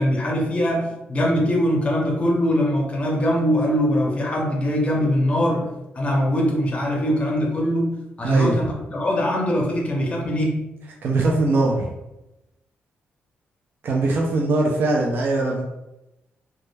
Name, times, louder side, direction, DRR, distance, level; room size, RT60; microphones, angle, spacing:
voice 1, 0.0-5.6 6.0-7.9 8.2-10.5, equal, 30° left, 0 dB, 0.6 m, -22 dB
voice 2, 8.2-8.6 11.0-11.9 13.8-15.6, right 2 dB, 55° right, -1 dB, 0.3 m, -21 dB
2.2 x 2.0 x 3.1 m, 0.95 s
cardioid pair, 130°, 4 cm